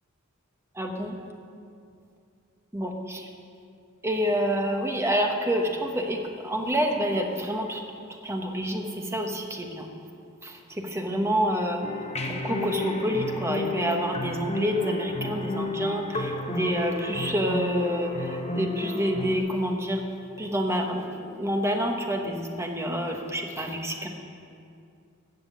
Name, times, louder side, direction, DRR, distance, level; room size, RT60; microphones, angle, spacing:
voice 1, 0.8-1.1 2.7-3.2 4.0-6.2 6.4-7.8 8.2-9.9 10.4-10.5 10.8-11.8 12.3-20.0 20.4-24.1, equal, 15° right, 2 dB, 1.2 m, -28 dB
sound 1, 11.8-19.4, left 2 dB, 30° left, 1.0 m, -32 dB
14.5 x 6.1 x 8.4 m, 2.5 s
head